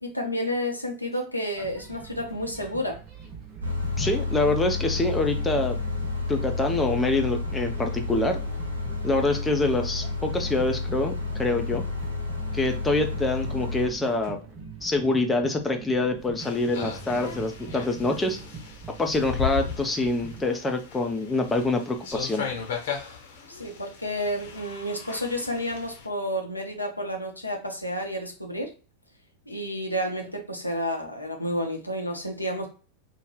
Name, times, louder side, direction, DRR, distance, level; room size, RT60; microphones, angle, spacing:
voice 1, 0.0-3.0 9.3-9.4 23.5-28.7 29.5-32.7, equal, 85° left, 2 dB, 0.7 m, -30 dB
sound 1, 1.6-20.5, right 6 dB, 35° right, 0.8 m, -43 dB
sound 2, 3.6-13.9, left 4 dB, 80° right, 0.7 m, -30 dB
voice 2, 4.0-5.8 6.3-8.4 9.0-11.8 12.5-14.4 14.8-18.4 19.0-22.4, left 2 dB, 10° left, 3 dB, 0.5 m, -25 dB
sound 3, 16.4-26.1, left 6 dB, 55° left, 0.8 m, -37 dB
2.7 x 2.2 x 3.2 m, 0.35 s
figure-of-eight pair, 90°, 0 cm